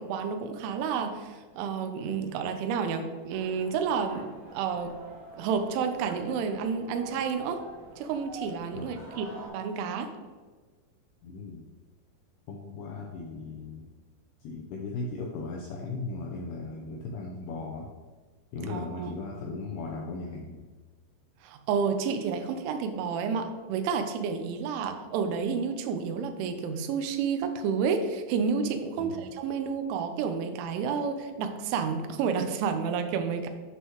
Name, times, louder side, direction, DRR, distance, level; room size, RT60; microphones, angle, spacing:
voice 1, 0.0-4.9 5.4-7.6 8.0-10.1 18.7-19.1 21.4-33.5, right 6 dB, 80° right, 7 dB, 3.1 m, -30 dB
sound 1, 3.3-9.5, right 1 dB, 60° right, 2.6 m, -46 dB
voice 2, 8.7-9.1 11.2-11.7 12.5-13.9 14.4-17.9 18.5-20.7 29.0-29.3, left 3 dB, 80° left, -1 dB, 2.3 m, -37 dB
11.5 x 6.4 x 3.0 m, 1.4 s
omnidirectional pair, 5.6 m